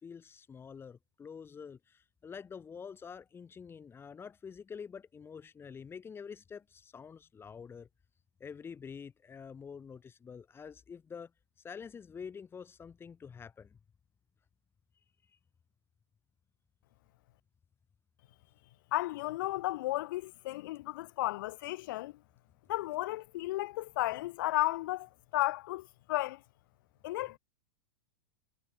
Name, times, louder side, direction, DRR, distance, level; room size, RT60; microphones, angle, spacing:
voice 1, 0.0-7.9 8.4-11.3 11.6-13.8, left 6 dB, 15° left, 2.2 m, -47 dB
voice 2, 18.9-22.1 22.7-26.4 27.0-27.4, left 18 dB, 55° left, 1.5 m, -34 dB
figure-of-eight pair, 95°, 13 cm